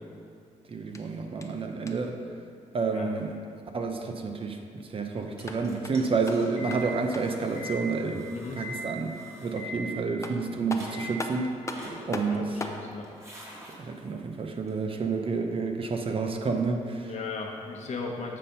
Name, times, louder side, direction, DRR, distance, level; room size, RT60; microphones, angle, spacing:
voice 1, 0.7-2.2 2.7-3.3 3.7-4.6 4.9-8.2 8.6-11.5 12.1-12.5 13.8-17.1, right 4 dB, 45° right, 4 dB, 0.6 m, -29 dB
sound 1, 0.8-2.2 5.2-7.5 9.8-9.9 10.2-12.9, left 2 dB, 20° left, 0.6 m, -40 dB
sound 2, 5.3-10.4 10.7-11.3 11.7-12.5 12.8-13.7 14.7-14.8, equal, 20° right, 1.5 m, -42 dB
voice 2, 12.3-13.1 17.0-18.4, left 4 dB, 60° left, 0 dB, 1.1 m, -36 dB
7.4 x 4.2 x 5.2 m, 2.4 s
cardioid pair, 100°, 13 cm